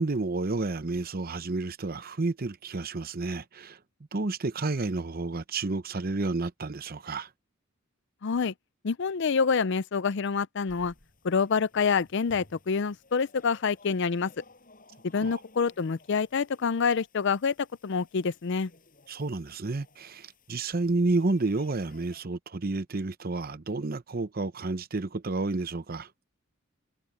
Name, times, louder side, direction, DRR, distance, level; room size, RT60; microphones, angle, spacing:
voice 1, 0.0-3.8 4.1-7.3 15.2-15.4 19.1-26.1, right 3 dB, 45° right, 0.8 m, -30 dB
voice 2, 8.2-8.5 8.8-10.9 11.2-14.3 15.1-17.5 17.8-18.7, left 5 dB, 60° left, 0.5 m, -27 dB
sound 1, 10.7-22.2, left 2 dB, 40° left, 7.2 m, -58 dB
head